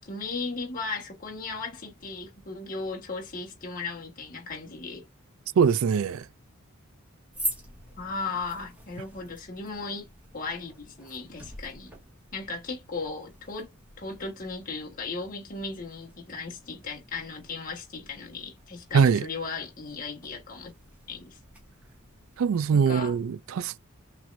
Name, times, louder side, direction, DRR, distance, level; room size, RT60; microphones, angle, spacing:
voice 1, 0.0-5.0 8.0-10.1 10.3-12.0 12.3-13.7 14.0-20.7 21.1-21.4 22.7-23.1, left 4 dB, 40° left, 1.3 m, -36 dB
voice 2, 5.6-6.3 18.9-19.3 22.4-23.8, right 6 dB, 70° right, 0.4 m, -22 dB
sound 1, 7.3-23.1, right 1 dB, 5° right, 1.8 m, -44 dB
5.9 x 3.3 x 2.5 m
head